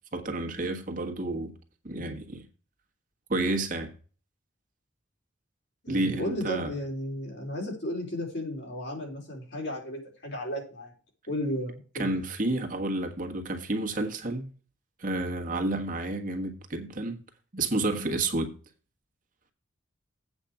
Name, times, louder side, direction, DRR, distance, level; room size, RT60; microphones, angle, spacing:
voice 1, 0.1-1.5 1.8-2.5 3.3-3.9 5.9-6.7 11.9-14.5 15.0-17.2 17.5-18.5, right 2 dB, 45° right, 1.5 m, -30 dB
voice 2, 5.8-10.9 11.3-12.2, equal, 60° left, 3.6 m, -34 dB
8.3 x 5.1 x 7.2 m
head